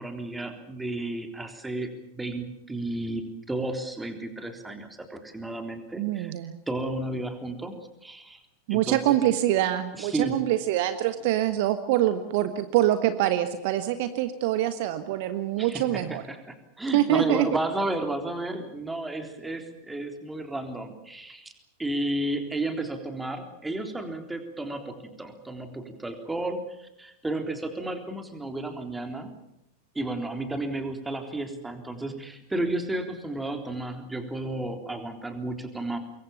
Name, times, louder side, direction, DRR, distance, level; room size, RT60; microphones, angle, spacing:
voice 1, 0.0-6.3 6.7-7.7 8.0-8.4 8.7-9.2 10.0-10.4 15.6-21.5 21.8-29.3 30.0-36.0, right 2 dB, 10° right, 6 dB, 3.6 m, -32 dB
voice 2, 6.0-6.6 8.7-16.2 16.9-17.5, right 13 dB, 50° right, 10 dB, 1.4 m, -25 dB
26.0 x 22.5 x 7.1 m, 0.83 s
figure-of-eight pair, 90°, 0 cm